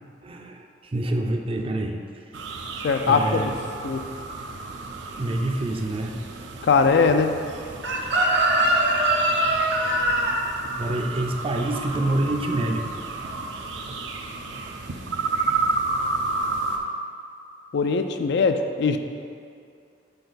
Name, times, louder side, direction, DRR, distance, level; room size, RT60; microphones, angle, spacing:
voice 1, 0.2-2.0 3.1-3.5 5.2-6.2 10.6-13.0 13.9-14.0, right 1 dB, 30° right, 3 dB, 0.5 m, -27 dB
sound 1, 2.3-16.8, right 3 dB, 90° right, 0.5 m, -32 dB
voice 2, 2.8-3.5 3.8-4.0 6.6-7.3 17.7-19.0, left 5 dB, 65° left, 7 dB, 0.4 m, -20 dB
Chicken rooster, 7.8-12.8 13.1-13.4, right 1 dB, 75° right, 0.9 m, -23 dB
6.8 x 4.3 x 4.0 m, 2.4 s
head